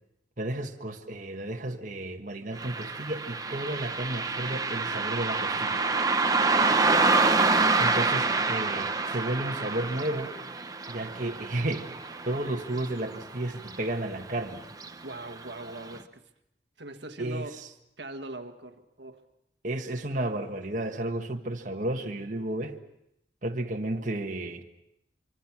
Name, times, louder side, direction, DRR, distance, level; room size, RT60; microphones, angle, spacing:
voice 1, 0.4-5.8 7.8-10.3 10.9-11.9 12.3-14.6 17.2-17.7 19.6-22.8 23.4-24.6, right 1 dB, 45° right, 1.5 m, -32 dB
Car passing by, 2.6-13.4 13.7-13.8 14.7-14.9 15.4-15.5 16.0-16.1, right 3 dB, 20° right, 1.0 m, -27 dB
voice 2, 15.0-16.2 16.8-17.6 18.0-19.2, right 2 dB, 75° right, 1.6 m, -41 dB
25.5 x 25.0 x 6.0 m
head